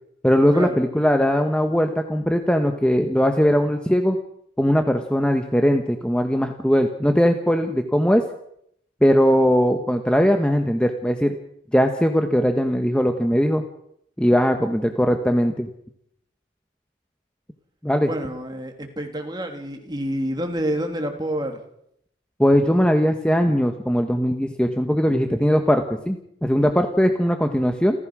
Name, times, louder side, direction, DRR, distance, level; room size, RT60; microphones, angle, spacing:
voice 1, 0.2-4.2 4.6-8.2 9.0-11.4 11.7-13.6 14.2-15.7 17.8-18.1 22.4-28.0, equal, 5° left, 5 dB, 1.3 m, -20 dB
voice 2, 18.0-21.6, right 1 dB, 20° right, 4 dB, 3.1 m, -28 dB
29.5 x 15.0 x 6.3 m, 0.73 s
head